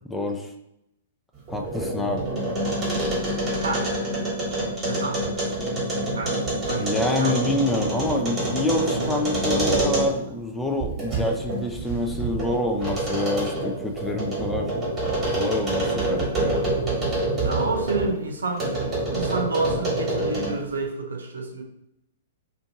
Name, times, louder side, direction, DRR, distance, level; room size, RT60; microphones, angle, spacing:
voice 1, 0.1-0.5 1.5-2.2 6.7-14.7 15.3-16.7, left 1 dB, 5° left, 2 dB, 0.3 m, -27 dB
sound 1, 1.4-10.3 10.8-18.1 18.6-20.7, right 1 dB, 20° right, 1.2 m, -26 dB
voice 2, 3.3-3.9 4.8-5.3 6.1-6.9 7.2-7.5 17.4-18.7 18.9-21.6, right 3 dB, 80° right, 1 dB, 0.5 m, -29 dB
2.5 x 2.4 x 2.7 m, 0.81 s
figure-of-eight pair, 115°, 0 cm